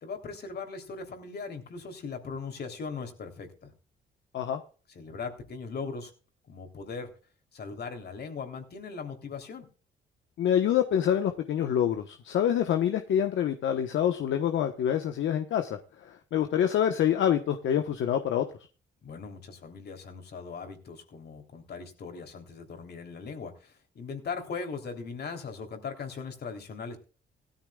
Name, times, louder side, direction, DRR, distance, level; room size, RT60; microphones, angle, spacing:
voice 1, 0.0-3.7 4.9-6.1 6.5-7.1 7.5-9.7 19.0-27.0, left 5 dB, 55° left, 5 dB, 3.4 m, -39 dB
voice 2, 10.4-18.5, left 9 dB, 75° left, 6 dB, 1.2 m, -26 dB
17.0 x 13.0 x 2.4 m, 0.37 s
cardioid pair, 90°, 20 cm